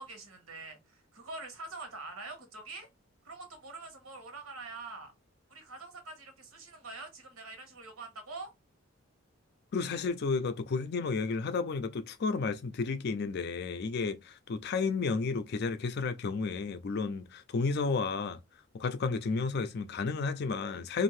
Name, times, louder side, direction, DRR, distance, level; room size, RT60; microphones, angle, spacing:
voice 1, 0.0-2.9 3.2-5.1 5.5-8.5, right 3 dB, 85° right, 1.1 m, -45 dB
voice 2, 9.7-18.4 18.7-21.0, left 4 dB, 50° left, 0.4 m, -32 dB
2.7 x 2.5 x 3.1 m
head